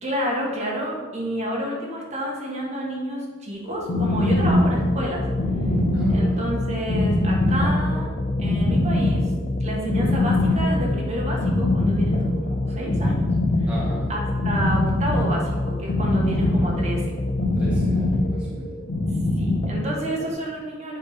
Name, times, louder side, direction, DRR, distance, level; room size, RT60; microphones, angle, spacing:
voice 1, 0.0-5.3 6.1-8.1 8.4-9.3 9.6-13.2 13.6-13.7 14.1-17.2 19.3-21.0, equal, 35° right, -2 dB, 1.5 m, -29 dB
sound 1, 3.6-20.3, left 1 dB, 70° left, 1.6 m, -23 dB
sound 2, 4.7-18.4, left 2 dB, 45° left, 0.5 m, -28 dB
voice 2, 5.9-6.4 13.7-14.1 17.5-18.7, right 1 dB, 5° right, -6 dB, 0.9 m, -35 dB
7.5 x 4.3 x 5.1 m, 1.4 s
head